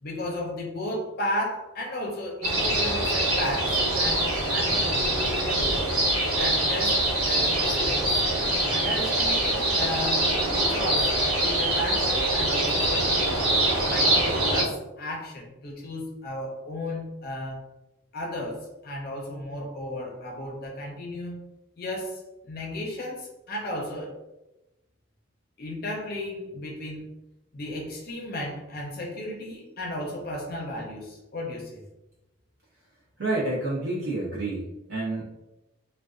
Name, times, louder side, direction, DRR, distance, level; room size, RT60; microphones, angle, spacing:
voice 1, 0.0-5.8 6.3-8.1 8.7-13.4 13.9-17.6 18.1-21.4 21.8-24.2 25.6-27.1 27.5-31.8, left 1 dB, 45° left, -1 dB, 0.6 m, -34 dB
sound 1, 2.4-14.6, right 1 dB, 85° right, 1.1 m, -24 dB
voice 2, 33.2-35.3, right 2 dB, 60° right, -5 dB, 0.5 m, -29 dB
2.4 x 2.2 x 2.3 m, 0.96 s
head